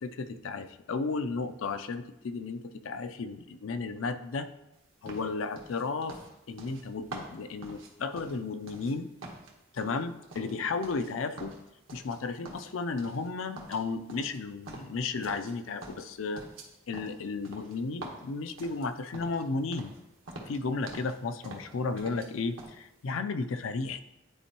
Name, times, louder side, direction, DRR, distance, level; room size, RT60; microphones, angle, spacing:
voice 1, 0.0-4.5 5.0-6.2 6.5-9.1 9.7-11.5 11.9-16.4 16.9-19.9 20.5-24.0, left 4 dB, 80° left, 9 dB, 0.5 m, -34 dB
sound 1, 5.1-8.9 9.2-11.1 11.4-12.2 12.5-13.3 13.6-15.6 15.8-19.5 19.7-20.0 20.3-21.2 21.4-22.3 22.6-22.8, right 2 dB, 90° right, 1.2 m, -46 dB
10.0 x 4.4 x 2.9 m, 0.91 s
head